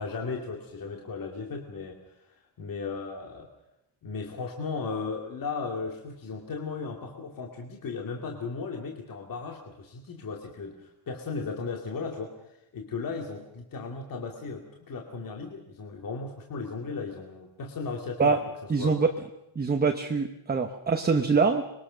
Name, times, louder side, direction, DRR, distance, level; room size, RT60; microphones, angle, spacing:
voice 1, 0.0-2.0 2.6-3.5 4.0-12.3 12.7-18.4 18.8-19.0, left 4 dB, 45° left, 1 dB, 2.5 m, -36 dB
voice 2, 18.7-19.1 19.5-21.6, right 4 dB, 20° right, 5 dB, 1.1 m, -24 dB
26.0 x 21.5 x 6.4 m, 0.85 s
cardioid pair, 175°, 48 cm